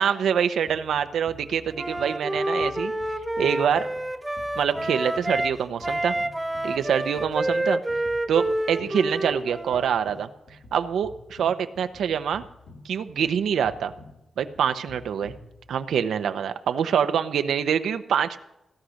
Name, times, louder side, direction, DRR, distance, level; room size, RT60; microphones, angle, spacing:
voice 1, 0.0-2.9 3.4-3.9 4.6-6.1 6.6-7.8 8.3-10.3 10.7-12.4 12.8-13.9 14.4-15.3 15.7-18.4, right 8 dB, 90° right, 9 dB, 0.8 m, -25 dB
sound 1, 0.7-16.0, left 2 dB, 65° left, 2.6 m, -49 dB
Wind instrument woodwind instrument, 1.7-5.6 5.8-9.9, right 1 dB, 10° right, 0.8 m, -28 dB
17.0 x 11.5 x 6.4 m, 0.92 s
cardioid pair, 105°, 0 cm